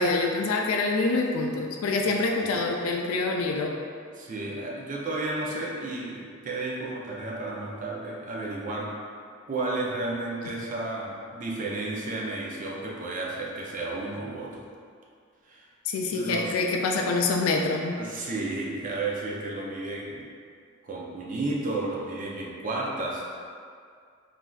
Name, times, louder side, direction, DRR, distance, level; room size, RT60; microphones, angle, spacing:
voice 1, 0.0-3.8 15.9-18.0, left 3 dB, 85° left, 2 dB, 0.3 m, -26 dB
voice 2, 4.1-8.9 9.5-14.6 15.4-15.7 16.1-16.5 18.0-20.3 20.8-23.4, right 2 dB, 40° right, -3 dB, 0.4 m, -32 dB
3.2 x 2.5 x 2.2 m, 2.2 s
head